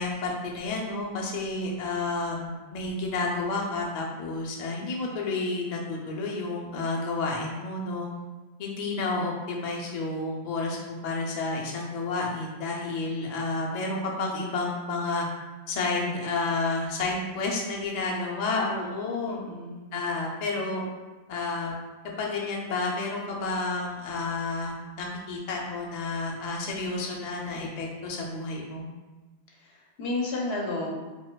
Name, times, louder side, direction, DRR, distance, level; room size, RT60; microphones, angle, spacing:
voice 1, 0.0-8.1 8.6-15.3 15.7-19.4 19.9-20.8 21.3-21.8 22.2-28.9, left 3 dB, 55° left, -1 dB, 0.5 m, -30 dB
voice 2, 19.2-19.8 29.6-30.9, left 2 dB, 75° left, -1 dB, 0.8 m, -32 dB
4.2 x 2.2 x 2.2 m, 1.2 s
omnidirectional pair, 1.1 m